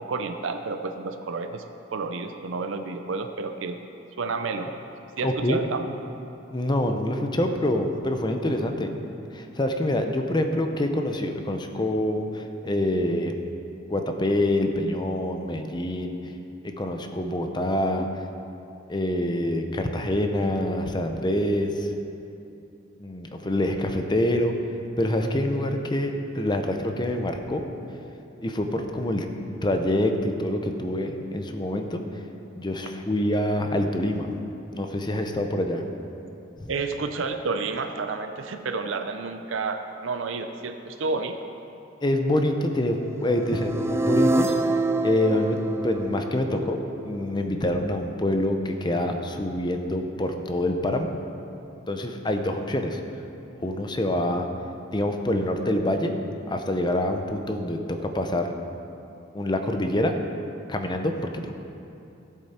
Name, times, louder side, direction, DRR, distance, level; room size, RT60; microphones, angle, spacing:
voice 1, 0.0-1.6 1.9-3.8 4.2-4.7 5.2-5.9 36.7-41.5 43.5-43.6, right 4 dB, 70° right, 7 dB, 0.5 m, -30 dB
voice 2, 5.2-5.6 6.5-8.9 9.3-13.3 13.9-16.3 16.6-18.1 18.9-21.9 23.0-24.5 25.0-27.7 28.4-29.3 29.6-32.0 32.5-34.3 34.7-35.8 36.6-36.7 42.0-44.5 45.0-51.1 51.9-53.0 53.5-54.5 54.9-56.1 56.5-58.5 59.3-60.2 60.7-61.5, left 1 dB, 20° left, 5 dB, 0.7 m, -26 dB
sound 1, 43.3-47.3, right 2 dB, 15° right, 0.3 m, -26 dB
15.0 x 7.3 x 4.3 m, 2.8 s
head